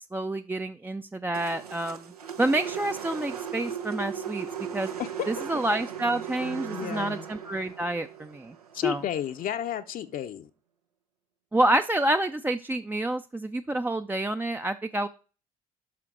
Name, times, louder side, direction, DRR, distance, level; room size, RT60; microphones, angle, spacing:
voice 1, 0.1-2.1 2.4-4.5 4.7-4.9 5.3-8.6 8.8-9.0 11.5-15.1, right 1 dB, 10° right, 0.5 m, -28 dB
sound 1, 1.3-9.6, right 8 dB, 85° right, 0.7 m, -38 dB
voice 2, 6.7-7.3 8.7-10.5, left 10 dB, 45° left, 0.7 m, -31 dB
11.0 x 5.8 x 3.8 m
figure-of-eight pair, 55°, 19 cm